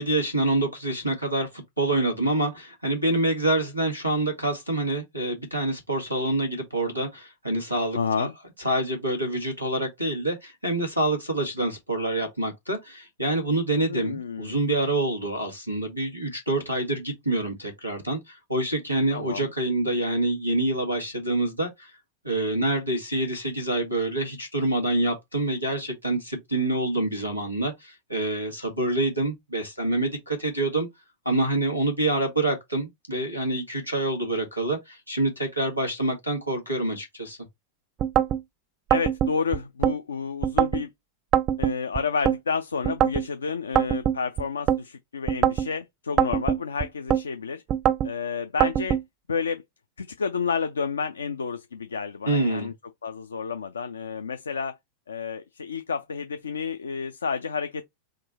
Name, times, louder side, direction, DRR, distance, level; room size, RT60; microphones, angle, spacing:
voice 1, 0.0-8.3 8.6-21.9 22.2-30.9 31.2-37.4 52.2-52.7, right 1 dB, 90° left, 1.4 m, -26 dB
voice 2, 7.9-8.3 13.9-14.6 19.1-19.5 38.9-40.9 41.6-47.6 48.0-49.0 49.3-49.6 50.0-52.7 53.0-54.8 55.1-57.8, left 5 dB, 70° left, 0.4 m, -30 dB
sound 1, 38.0-38.4 38.9-40.0 40.4-40.8 41.3-42.4 42.8-43.3 43.8-44.8 45.3-45.7 46.2-47.2 47.7-48.1 48.6-49.0, right 10 dB, 30° right, 0.3 m, -23 dB
3.7 x 2.2 x 4.0 m
figure-of-eight pair, 90°, 0 cm